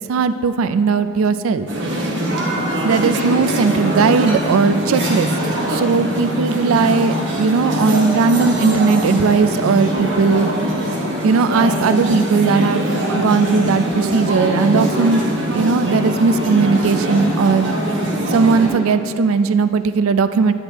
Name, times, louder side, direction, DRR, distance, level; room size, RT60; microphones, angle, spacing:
voice 1, 0.0-1.7 2.8-5.3 5.7-10.5 11.2-15.2 15.5-17.7 18.3-20.5, right 5 dB, 85° right, 12 dB, 0.3 m, -17 dB
sound 1, 1.7-18.7, equal, 60° right, 1.2 m, -22 dB
9.9 x 8.8 x 2.9 m, 2.6 s
head